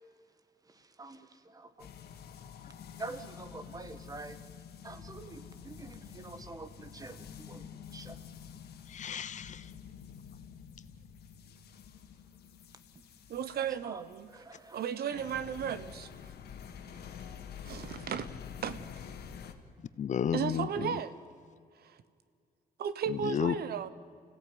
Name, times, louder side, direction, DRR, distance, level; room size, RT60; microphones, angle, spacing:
voice 1, 0.7-1.9 3.0-4.4 4.8-8.2 13.6-14.8, right 3 dB, 20° right, 1.6 m, -47 dB
sound 1, 1.8-19.5, left 7 dB, 80° left, 2.0 m, -48 dB
voice 2, 8.9-9.7 20.0-21.0 23.1-23.6, left 8 dB, 45° left, 0.8 m, -32 dB
voice 3, 13.3-14.3 14.7-16.1 17.6-18.3 18.6-18.9 20.3-21.1 21.8-21.9 22.8-23.9, right 8 dB, 70° right, 1.2 m, -34 dB
29.5 x 16.5 x 9.6 m
wide cardioid pair, 155°, 17 cm